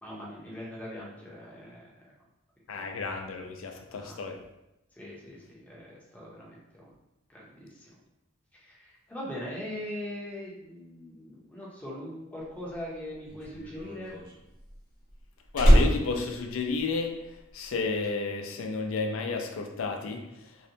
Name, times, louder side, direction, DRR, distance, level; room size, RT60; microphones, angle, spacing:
voice 1, 0.0-2.1 2.8-2.9 3.9-4.2 4.9-6.9 7.3-7.9 8.5-14.2, left 1 dB, 10° left, -5 dB, 0.5 m, -41 dB
voice 2, 2.7-4.4 15.5-17.1 17.5-20.2, left 4 dB, 80° left, 4 dB, 0.4 m, -31 dB
Slam, 12.6-17.4 17.6-18.1, equal, 45° left, 0.7 m, -24 dB
2.7 x 2.1 x 2.6 m, 0.89 s
head